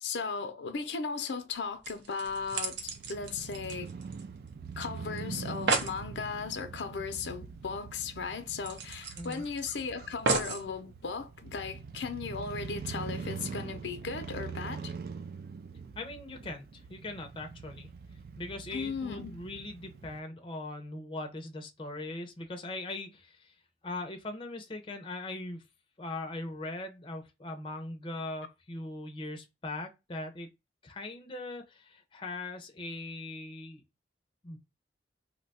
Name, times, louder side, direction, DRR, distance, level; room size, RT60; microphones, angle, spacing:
voice 1, 0.0-3.9 4.8-14.9 18.7-19.3, left 5 dB, 90° left, 0.6 m, -37 dB
sound 1, 1.5-1.6 1.8-4.5 4.8-4.9 5.2-5.3 5.5-6.0 7.5-7.6 7.9-8.0 8.6-9.7 10.3-10.7 11.4-11.5, right 3 dB, 80° right, 0.7 m, -33 dB
Crow / Motorcycle, 2.3-20.2, right 5 dB, 55° right, 0.3 m, -43 dB
voice 2, 16.0-17.9 18.4-23.5 23.8-25.6 26.0-30.5 30.8-33.8 34.4-34.6, left 2 dB, 30° left, 0.5 m, -40 dB
2.8 x 2.2 x 4.0 m
head